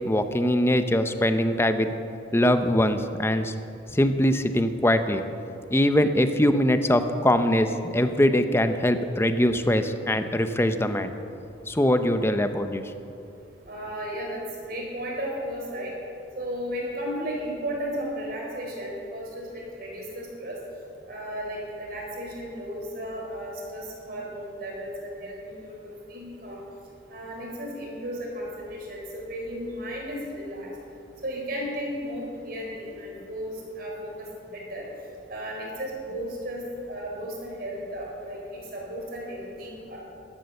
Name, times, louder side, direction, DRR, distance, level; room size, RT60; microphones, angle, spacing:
voice 1, 0.0-1.9 2.3-3.5 3.9-5.2 5.7-11.1 11.7-12.8, left 1 dB, 15° left, 9 dB, 0.7 m, -22 dB
voice 2, 13.7-14.4 14.7-15.9 16.4-20.6 21.1-25.8 26.1-26.6 27.1-30.7 31.2-33.9 34.5-34.8 35.3-38.4 38.7-40.0, equal, 55° right, -2 dB, 4.2 m, -34 dB
13.5 x 12.5 x 6.6 m, 2.7 s
head